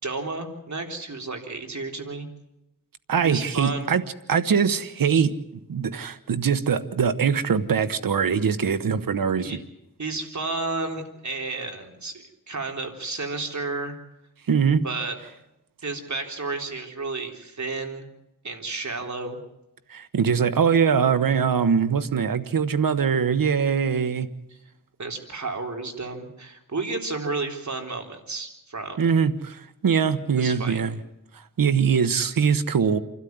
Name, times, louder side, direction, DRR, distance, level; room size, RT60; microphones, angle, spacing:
voice 1, 0.0-2.3 3.2-3.9 9.4-9.6 10.0-14.0 14.8-15.2 15.8-18.1 18.4-19.4 25.0-29.0 30.4-30.8, right 3 dB, 55° right, 3 dB, 3.9 m, -32 dB
voice 2, 3.1-4.0 4.3-5.3 5.7-9.5 14.5-14.8 19.9-24.3 29.0-31.0 31.6-33.0, right 6 dB, 85° right, 12 dB, 1.2 m, -22 dB
28.0 x 12.5 x 9.5 m, 0.87 s
cardioid pair, 60°, 33 cm